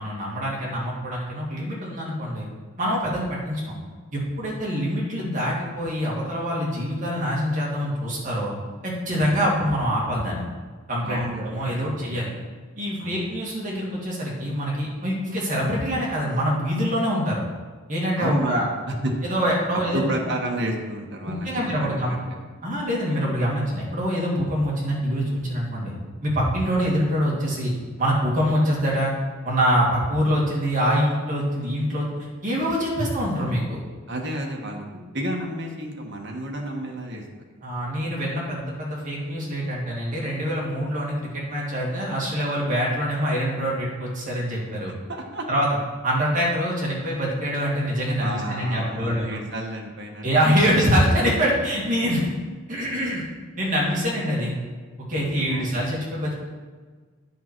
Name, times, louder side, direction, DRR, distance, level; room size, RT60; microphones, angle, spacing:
voice 1, 0.0-2.5 2.8-3.8 4.1-8.5 8.8-10.5 10.9-12.3 12.8-17.4 17.9-18.6 19.2-20.1 21.3-22.2 22.6-26.0 26.2-27.7 28.0-29.1 29.4-32.1 32.4-33.8 37.6-44.9 45.5-45.7 46.0-49.4 50.2-52.3 52.7-53.2 53.6-54.5 55.1-56.3, equal, 40° right, -4 dB, 2.4 m, -25 dB
voice 2, 11.0-12.3 13.0-13.2 18.2-18.7 19.0-19.1 19.7-22.4 34.1-37.2 45.1-45.5 48.2-50.4 55.1-55.9, right 1 dB, 55° right, 0 dB, 1.3 m, -31 dB
9.2 x 6.2 x 4.5 m, 1.4 s
head